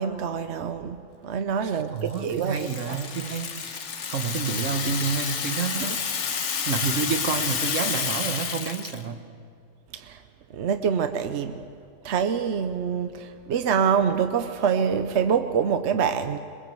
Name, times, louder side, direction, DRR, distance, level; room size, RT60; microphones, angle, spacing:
voice 1, 0.0-3.0 5.9-6.0 9.9-10.2 10.5-11.7 12.0-16.4, right 7 dB, 65° right, 8 dB, 1.0 m, -26 dB
voice 2, 1.6-6.0 6.6-9.2, right 5 dB, 80° right, 8 dB, 1.6 m, -29 dB
Rattle (instrument), 2.1-9.0, left 6 dB, 70° left, 1.4 m, -30 dB
22.5 x 22.0 x 7.8 m, 2.4 s
omnidirectional pair, 1.3 m